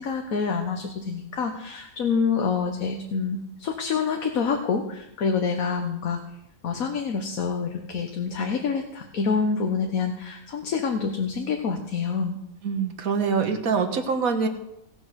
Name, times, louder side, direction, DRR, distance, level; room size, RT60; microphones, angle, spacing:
voice 1, 0.0-6.2 6.6-12.4, left 5 dB, 80° left, 4 dB, 1.5 m, -27 dB
voice 2, 12.6-14.5, right 5 dB, 85° right, 6 dB, 1.6 m, -24 dB
17.5 x 6.2 x 6.3 m, 0.82 s
omnidirectional pair, 1.4 m